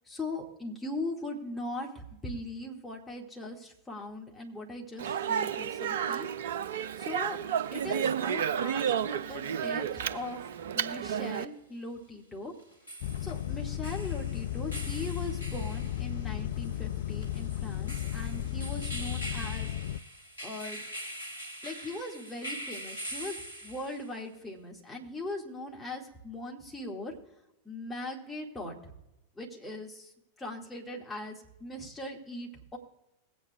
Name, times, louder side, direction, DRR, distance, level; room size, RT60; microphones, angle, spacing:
voice 1, 0.1-6.3 7.0-7.4 7.7-12.5 13.2-19.7 20.4-20.8 21.6-27.2 27.6-28.9 29.4-30.1 30.4-32.8, left 1 dB, 10° left, -2 dB, 1.9 m, -40 dB
Speech, 5.0-11.5, right 8 dB, 60° right, 0.4 m, -31 dB
sound 1, 10.0-10.1 12.6-24.2, right 1 dB, 80° left, 1.4 m, -43 dB
sound 2, 13.0-20.0, left 12 dB, 55° left, 0.3 m, -34 dB
21.0 x 8.5 x 2.3 m, 0.92 s
figure-of-eight pair, 90°, 0 cm